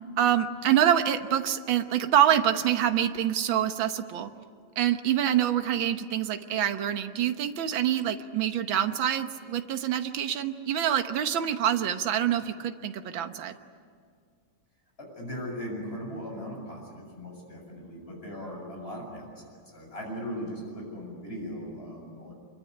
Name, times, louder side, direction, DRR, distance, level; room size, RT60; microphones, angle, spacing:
voice 1, 0.2-4.3 4.8-13.5, right 10 dB, 65° right, 8 dB, 1.8 m, -26 dB
voice 2, 15.0-22.3, equal, 25° left, 0 dB, 7.4 m, -38 dB
25.5 x 23.5 x 9.8 m, 2.1 s
omnidirectional pair, 2.4 m